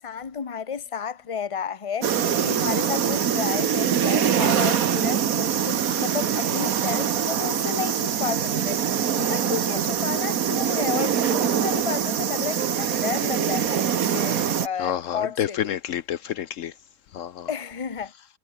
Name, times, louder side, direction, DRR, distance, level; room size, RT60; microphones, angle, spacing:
voice 1, 0.0-8.8 9.3-15.8 17.5-18.1, left 7 dB, 25° left, 1.0 m, -32 dB
sound 1, 2.0-14.7, right 8 dB, 85° right, 1.6 m, -24 dB
voice 2, 14.8-16.7 17.1-17.5, left 10 dB, 70° left, 1.0 m, -29 dB
omnidirectional pair, 1.5 m